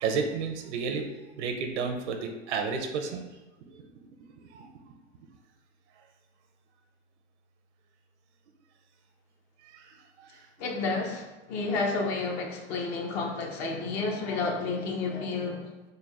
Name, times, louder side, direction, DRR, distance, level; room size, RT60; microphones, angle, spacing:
voice 1, 0.0-1.1 1.4-3.2 4.5-4.7 9.7-9.9 10.2-10.3, right 5 dB, 75° right, 5 dB, 0.7 m, -31 dB
voice 2, 10.6-15.7, left 3 dB, 60° left, 1 dB, 0.8 m, -31 dB
3.8 x 2.2 x 3.3 m, 1.1 s
hypercardioid pair, 95°, 34 cm